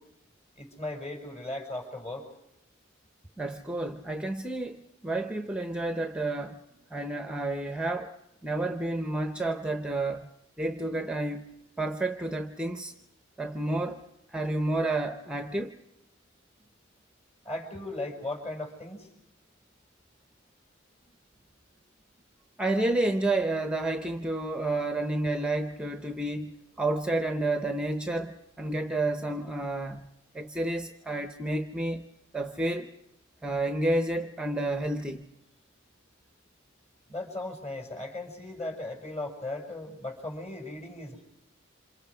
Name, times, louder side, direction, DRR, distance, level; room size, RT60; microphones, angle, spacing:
voice 1, 0.6-2.2 17.5-19.0 37.1-41.2, left 2 dB, 35° left, 6.1 m, -37 dB
voice 2, 3.4-6.6 6.9-8.1 8.4-10.3 10.6-12.9 13.4-14.0 14.3-15.8 22.6-26.5 26.8-30.1 30.3-32.0 32.3-32.9 33.4-35.3, right 2 dB, 5° right, 0.8 m, -30 dB
27.5 x 27.0 x 5.0 m
head